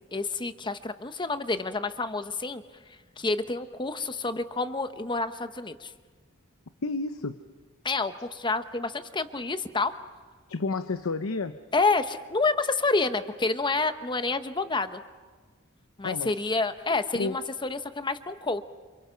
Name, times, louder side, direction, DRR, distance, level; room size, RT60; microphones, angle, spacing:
voice 1, 0.1-2.6 3.2-5.9 7.8-10.0 11.7-15.0 16.0-18.6, left 3 dB, 20° left, 10 dB, 0.9 m, -28 dB
voice 2, 6.8-7.4 10.5-11.6 16.0-16.3 17.1-17.4, left 3 dB, 85° left, 10 dB, 0.8 m, -30 dB
28.5 x 28.0 x 5.8 m, 1.4 s
head